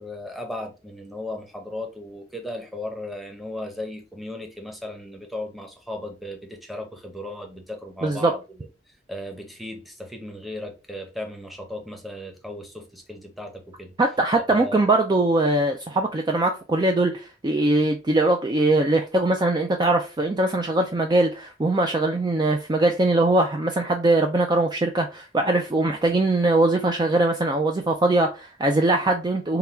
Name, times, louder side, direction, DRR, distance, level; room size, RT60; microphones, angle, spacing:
voice 1, 0.0-8.7 9.1-13.9 14.5-14.8, left 1 dB, ahead, 0.8 m, -36 dB
voice 2, 8.0-8.3 14.0-29.6, right 2 dB, 25° right, 0.4 m, -21 dB
3.8 x 2.2 x 4.3 m
head